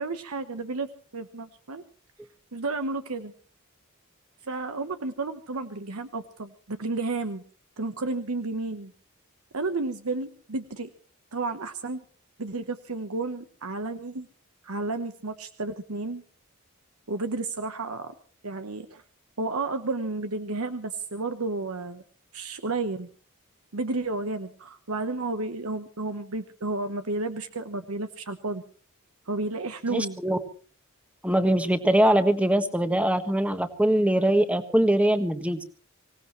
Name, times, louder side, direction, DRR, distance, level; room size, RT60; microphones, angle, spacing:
voice 1, 0.0-1.8 2.5-3.3 4.4-7.4 7.8-8.9 9.5-10.9 11.3-12.0 12.4-14.3 14.6-16.2 17.1-18.1 18.4-19.0 19.4-22.0 22.3-23.1 23.7-28.6 29.3-30.2, right 3 dB, 85° right, 9 dB, 1.1 m, -32 dB
voice 2, 29.9-30.4 31.2-35.6, right 1 dB, 5° right, 8 dB, 1.4 m, -22 dB
25.0 x 18.0 x 3.2 m, 0.39 s
head